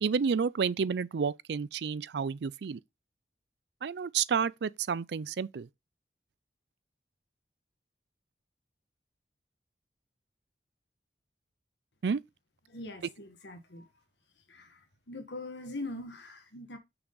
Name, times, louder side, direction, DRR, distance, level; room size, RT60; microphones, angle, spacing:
voice 1, 0.0-2.8 3.8-5.7 12.0-12.2, right 6 dB, 75° right, 0.4 m, -30 dB
voice 2, 12.7-13.9 14.5-14.8 15.1-16.8, left 2 dB, 85° left, 1.5 m, -42 dB
6.1 x 6.0 x 3.9 m
head